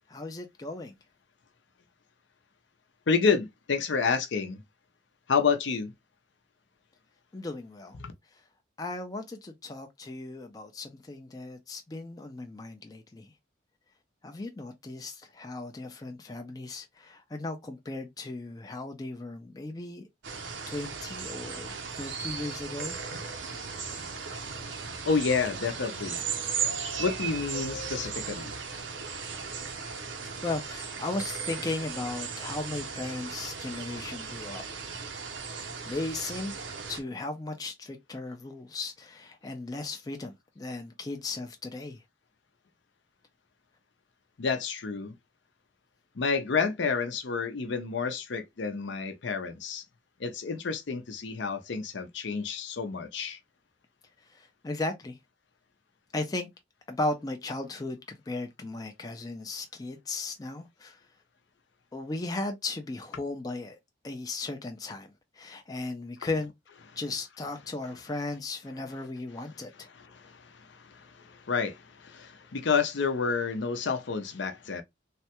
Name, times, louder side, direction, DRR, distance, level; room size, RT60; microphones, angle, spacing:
voice 1, 0.1-1.0 7.3-8.0 8.8-13.3 14.2-20.1 20.7-23.0 23.7-24.0 30.4-34.6 35.9-36.5 36.9-42.0 54.3-55.2 56.1-56.5 56.9-61.0 61.9-63.8 64.0-66.5 67.0-69.9, left 2 dB, 20° left, 0.4 m, -36 dB
voice 2, 3.1-4.6 5.3-5.9 8.0-8.1 23.1-30.4 44.4-45.1 46.2-49.8 50.2-53.4 69.9-74.8, left 5 dB, 70° left, 0.6 m, -30 dB
sound 1, 20.2-37.0, right 5 dB, 70° right, 0.6 m, -36 dB
3.2 x 2.1 x 2.8 m
head